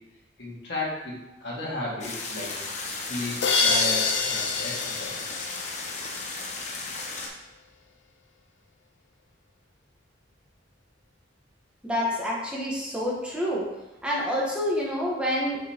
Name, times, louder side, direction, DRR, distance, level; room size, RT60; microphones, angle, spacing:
voice 1, 0.4-2.5 3.0-5.1, left 2 dB, 65° left, -5 dB, 1.8 m, -34 dB
sound 1, 2.0-7.3, left 3 dB, 40° left, 1.0 m, -35 dB
sound 2, 3.4-6.3, left 4 dB, 85° left, 0.6 m, -26 dB
voice 2, 11.8-13.7 14.0-15.6, equal, 5° right, -4 dB, 1.0 m, -27 dB
6.4 x 5.2 x 2.9 m, 0.97 s
head